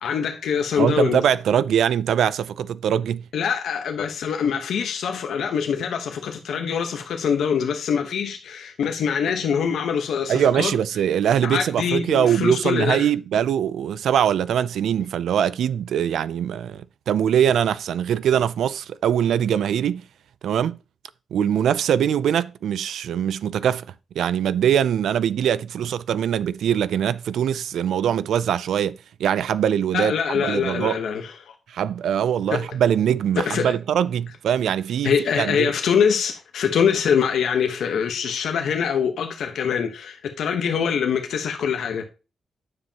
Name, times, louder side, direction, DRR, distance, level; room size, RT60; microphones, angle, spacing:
voice 1, 0.0-1.3 3.3-10.8 11.4-13.1 29.9-31.6 32.5-32.8 33.4-33.7 35.0-42.1, left 7 dB, 85° left, 1.0 m, -24 dB
voice 2, 0.8-3.2 10.3-20.0 20.4-20.8 21.3-23.9 24.2-31.0 31.7-35.7, right 9 dB, 90° right, 0.3 m, -22 dB
9.6 x 7.2 x 2.8 m
wide cardioid pair, 130°, 0 cm